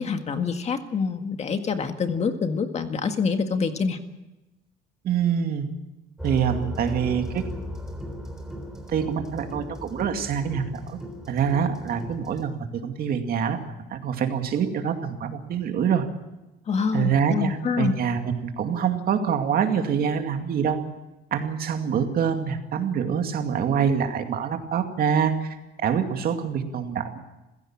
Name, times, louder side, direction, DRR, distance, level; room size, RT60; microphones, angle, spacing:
voice 1, 0.0-4.0 16.7-17.9, left 5 dB, 35° left, 7 dB, 1.8 m, -26 dB
voice 2, 5.0-5.7 6.2-7.4 8.9-10.7 11.3-13.6 13.9-16.1 16.9-20.8 21.3-25.6 25.8-27.2, right 7 dB, 55° right, 6 dB, 2.4 m, -25 dB
sound 1, 6.2-12.5, left 1 dB, 5° right, 3.6 m, -36 dB
27.5 x 16.0 x 7.4 m, 1.0 s
cardioid pair, 135°, 19 cm